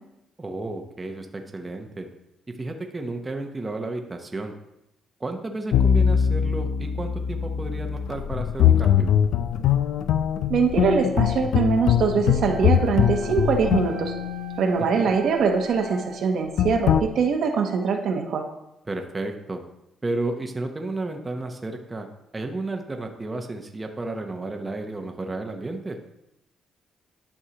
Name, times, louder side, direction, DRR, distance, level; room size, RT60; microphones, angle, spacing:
voice 1, 0.4-2.1 2.6-4.5 5.2-9.1 14.8-15.2 18.9-19.6 20.0-22.1 22.3-26.0, right 2 dB, 20° right, 3 dB, 0.8 m, -32 dB
sound 1, 5.7-15.1 16.6-17.0, left 9 dB, 80° left, 0.3 m, -22 dB
voice 2, 10.5-14.1 14.6-18.4, right 5 dB, 65° right, 3 dB, 1.0 m, -23 dB
Wind instrument woodwind instrument, 12.5-16.2, right 7 dB, 40° right, 1.2 m, -42 dB
11.0 x 5.6 x 2.9 m, 0.86 s
cardioid pair, 90°, 0 cm